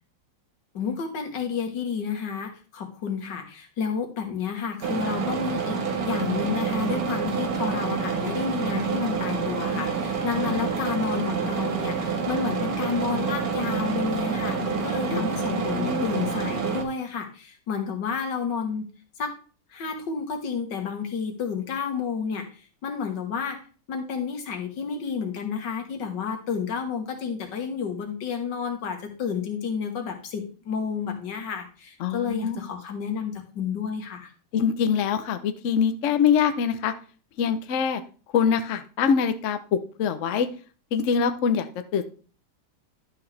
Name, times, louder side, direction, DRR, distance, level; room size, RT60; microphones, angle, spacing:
voice 1, 0.7-5.8 6.0-18.9 19.2-19.4 19.7-34.3, left 6 dB, 90° left, 4 dB, 2.0 m, -30 dB
sound 1, 4.8-16.8, right 5 dB, 60° right, 1.6 m, -28 dB
voice 2, 10.4-10.9 15.1-16.1 32.0-32.6 34.5-36.9 37.4-38.0 38.3-40.5 40.9-42.0, left 7 dB, 55° left, 9 dB, 0.9 m, -24 dB
11.5 x 5.9 x 3.3 m, 0.38 s
omnidirectional pair, 1.8 m